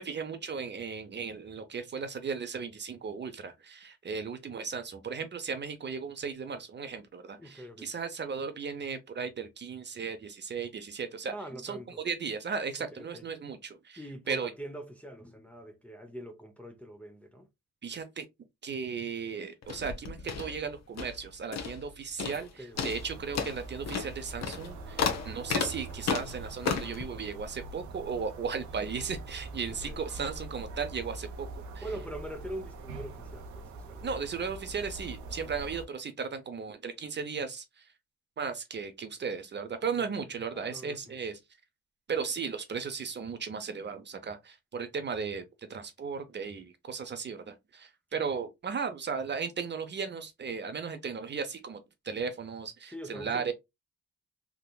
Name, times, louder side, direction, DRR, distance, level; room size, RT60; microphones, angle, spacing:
voice 1, 0.0-11.3 11.6-14.5 17.8-18.2 18.6-31.9 34.0-37.9 38.4-41.4 42.1-53.5, right 5 dB, 35° right, 0.7 m, -36 dB
voice 2, 7.4-7.9 11.3-12.0 12.9-13.2 14.0-17.5 22.6-22.9 29.6-30.0 31.8-34.3 39.8-40.1 40.5-41.2 48.3-48.4 52.9-53.5, right 1 dB, 5° left, 0.6 m, -43 dB
sound 1, 19.6-21.2 21.5-21.9 22.2-22.5 22.8-27.0, left 6 dB, 60° left, 0.9 m, -33 dB
sound 2, 22.7-35.9, right 3 dB, 70° right, 0.8 m, -43 dB
3.5 x 2.9 x 2.3 m
cardioid pair, 90°, 30 cm